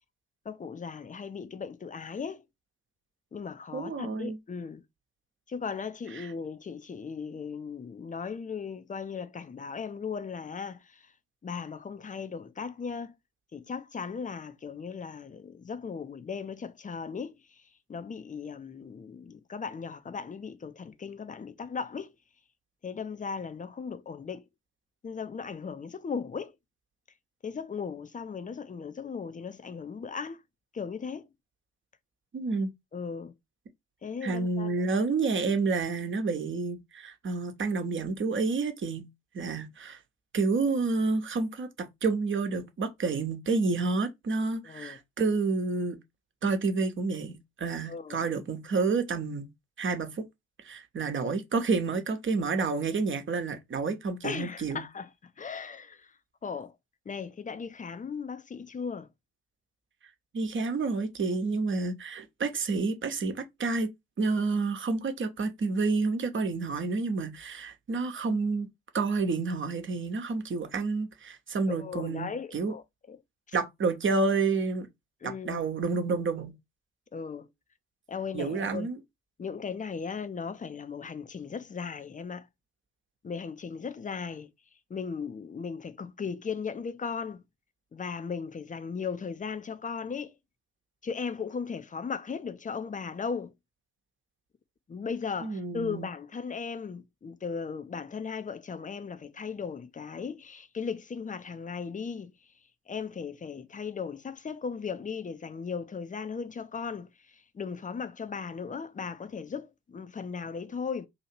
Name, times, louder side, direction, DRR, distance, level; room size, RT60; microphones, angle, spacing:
voice 1, 0.4-2.4 3.3-4.8 5.5-11.0 11.4-13.1 13.5-17.4 17.9-22.1 22.8-24.5 25.0-26.5 27.4-30.4 30.7-31.3 32.9-33.3 34.0-34.8 44.6-45.0 47.9-48.3 54.2-56.1 56.4-56.7 57.1-59.1 71.7-73.2 73.5-73.6 75.2-75.7 77.1-77.5 78.1-78.9 79.4-82.5 83.2-84.5 84.9-87.4 87.9-90.3 91.0-93.5 94.9-102.3 102.9-107.1 107.3-111.1, left 6 dB, 25° left, 0.7 m, -37 dB
voice 2, 3.7-4.4 6.1-6.3 32.3-32.7 34.2-39.0 39.3-40.0 40.3-46.0 46.4-49.5 49.8-50.2 50.6-54.8 60.3-63.9 64.2-68.7 68.9-72.7 73.5-74.9 75.2-76.5 78.3-79.0 95.4-96.1, right 4 dB, 40° right, 1.1 m, -29 dB
2.9 x 2.7 x 4.4 m
figure-of-eight pair, 45°, 31 cm